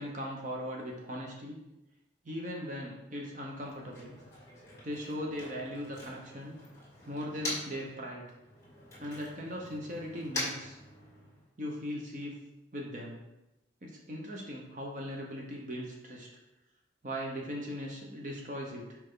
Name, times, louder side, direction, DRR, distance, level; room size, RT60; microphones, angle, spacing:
voice 1, 0.0-1.6 2.2-4.2 4.8-6.6 7.1-8.3 9.0-10.8 11.6-12.3 12.7-13.2 13.8-16.3 17.0-19.0, equal, 45° right, -1 dB, 0.9 m, -39 dB
Motor vehicle (road), 3.5-7.9 8.2-11.5, left 1 dB, 15° left, 2.0 m, -43 dB
5.6 x 4.6 x 3.7 m, 0.95 s
head